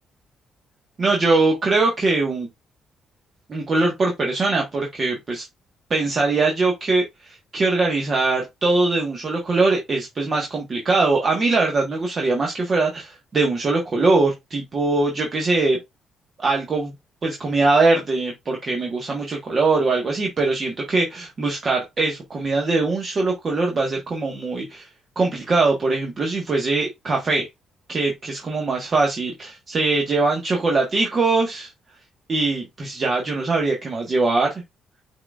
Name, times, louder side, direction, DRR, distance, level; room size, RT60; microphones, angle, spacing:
voice 1, 1.0-2.5 3.5-5.4 5.9-15.8 16.4-16.9 17.2-24.9 25.2-27.5 27.9-31.7 32.3-34.6, right 3 dB, 40° right, 1.2 m, -22 dB
5.7 x 3.9 x 2.3 m
cardioid pair, 90°, 0 cm